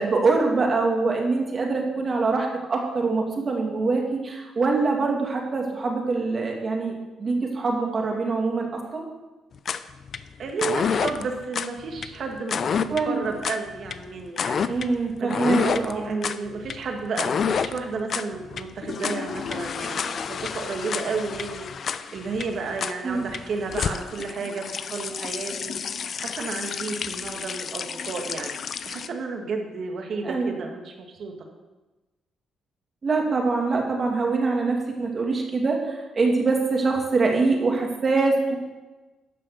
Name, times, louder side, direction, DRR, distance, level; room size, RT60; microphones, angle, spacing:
voice 1, 0.0-6.9 7.2-9.1 12.9-13.2 14.6-16.2 23.0-23.3 30.2-30.6 33.0-38.5, right 3 dB, 40° right, 1 dB, 2.4 m, -24 dB
sound 1, 9.5-29.1, left 6 dB, 55° left, 0.5 m, -29 dB
voice 2, 10.4-14.7 15.0-28.5 28.9-31.3, right 4 dB, 60° right, 2 dB, 2.0 m, -32 dB
12.0 x 5.6 x 6.8 m, 1.2 s
cardioid pair, 90°, 0 cm